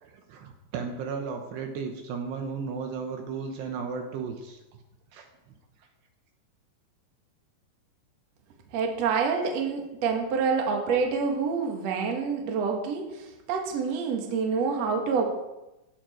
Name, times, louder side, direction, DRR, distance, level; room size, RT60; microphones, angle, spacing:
voice 1, 0.0-4.6 5.1-5.3, right 5 dB, 75° right, 4 dB, 3.1 m, -34 dB
voice 2, 8.7-15.2, right 5 dB, 50° right, 2 dB, 2.3 m, -27 dB
15.0 x 11.5 x 4.5 m, 0.98 s
omnidirectional pair, 5.2 m